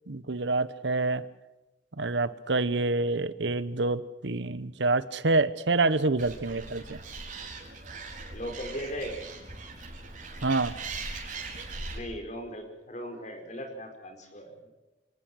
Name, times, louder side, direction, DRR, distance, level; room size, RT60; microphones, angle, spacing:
voice 1, 0.1-1.2 2.0-7.0 10.4-10.7, right 3 dB, 75° right, 16 dB, 1.0 m, -27 dB
Animal, 6.2-12.0, right 3 dB, 45° right, 4.7 m, -40 dB
voice 2, 8.3-9.2 11.9-14.7, equal, 40° left, 5 dB, 5.2 m, -38 dB
27.0 x 18.5 x 6.4 m, 1.1 s
head